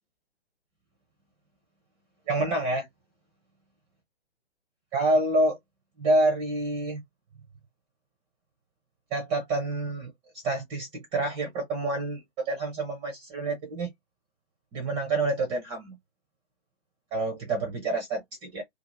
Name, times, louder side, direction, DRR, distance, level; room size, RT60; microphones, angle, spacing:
voice 1, 2.3-2.9 4.9-5.6 6.0-7.0 9.1-10.1 10.4-13.9 14.7-15.9 17.1-18.6, right 2 dB, 15° right, 0.7 m, -27 dB
2.8 x 2.7 x 2.6 m
figure-of-eight pair, 125°, 34 cm